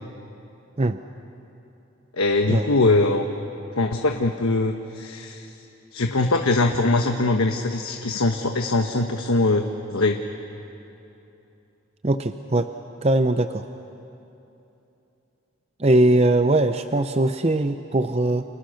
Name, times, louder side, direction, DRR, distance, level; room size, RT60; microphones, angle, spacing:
voice 1, 2.2-3.2 3.8-5.5 5.9-9.7 9.9-10.2, left 2 dB, 90° left, 4 dB, 1.2 m, -22 dB
voice 2, 12.0-12.7 13.0-13.7 15.8-18.4, right 2 dB, 30° right, 9 dB, 0.5 m, -20 dB
29.5 x 28.5 x 6.5 m, 2.9 s
head